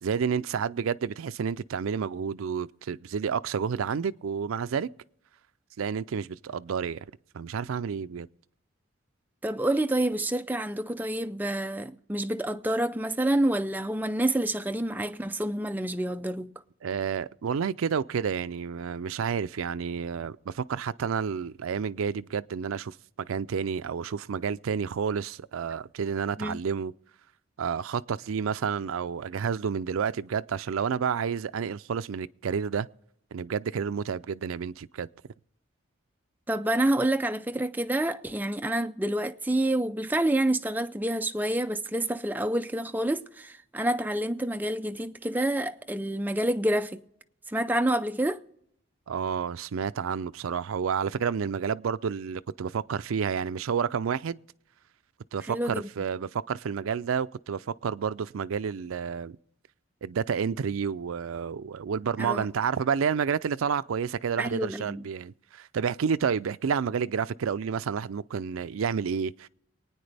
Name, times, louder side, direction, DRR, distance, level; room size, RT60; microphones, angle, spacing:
voice 1, 0.0-4.9 5.8-7.1 7.3-8.3 16.8-26.9 27.6-32.9 33.3-35.1 49.1-54.4 55.3-59.4 60.0-69.5, right 6 dB, 75° right, 0.4 m, -30 dB
voice 2, 9.4-16.5 26.4-26.6 36.5-47.0 47.5-48.4 55.5-55.9 62.2-62.5 64.4-65.1, right 1 dB, 10° right, 0.4 m, -28 dB
24.0 x 9.5 x 3.4 m
head